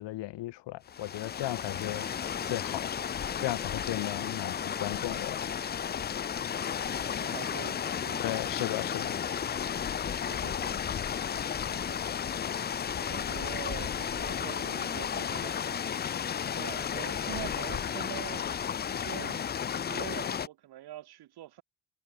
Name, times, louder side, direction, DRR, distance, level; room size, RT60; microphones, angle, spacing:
voice 1, 0.0-5.5 8.2-9.2, left 16 dB, 80° left, 3.8 m, -36 dB
sound 1, 0.9-20.5, left 8 dB, 25° left, 0.5 m, -33 dB
voice 2, 7.1-8.3 10.3-11.0 11.8-12.2 13.0-16.2 16.5-18.5 18.9-19.4 19.7-21.6, right 13 dB, 65° right, 4.7 m, -44 dB
cardioid pair, 165°, 42 cm